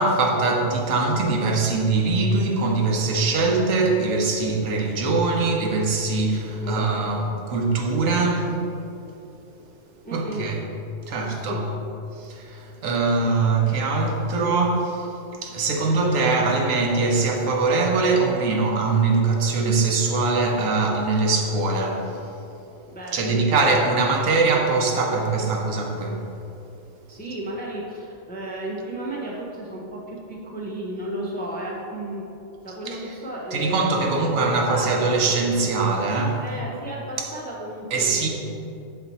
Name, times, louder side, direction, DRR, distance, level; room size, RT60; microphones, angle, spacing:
voice 1, 0.0-8.6 10.1-10.6 11.1-11.6 12.2-15.1 15.4-22.1 23.1-26.2 32.9-33.0 33.5-36.4 37.2-37.3 37.9-38.3, right 3 dB, 80° right, 1 dB, 1.2 m, -22 dB
voice 2, 6.5-6.9 10.0-10.5 11.2-11.6 22.9-23.6 27.1-32.2 32.6-35.2 36.4-38.3, right 1 dB, 15° left, -3 dB, 0.4 m, -33 dB
5.9 x 4.3 x 4.1 m, 2.8 s
omnidirectional pair, 1.4 m